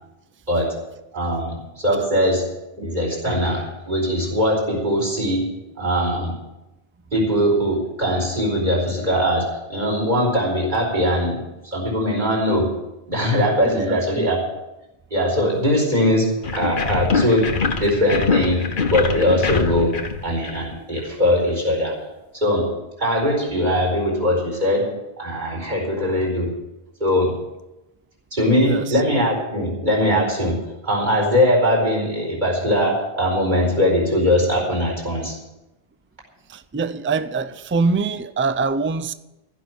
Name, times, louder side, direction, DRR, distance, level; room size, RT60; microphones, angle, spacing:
voice 1, 0.5-0.8 1.1-2.5 2.8-5.5 5.8-6.3 7.1-12.7 13.1-14.4 15.1-22.0 22.4-26.6 27.0-27.4 28.3-35.4, equal, 45° right, 4.6 m, -21 dB
voice 2, 13.6-14.3 28.6-29.0 36.5-39.1, right 4 dB, 20° right, 0.3 m, -24 dB
sound 1, 16.4-21.1, left 5 dB, 55° left, 1.2 m, -24 dB
15.5 x 6.3 x 9.7 m
omnidirectional pair, 1.1 m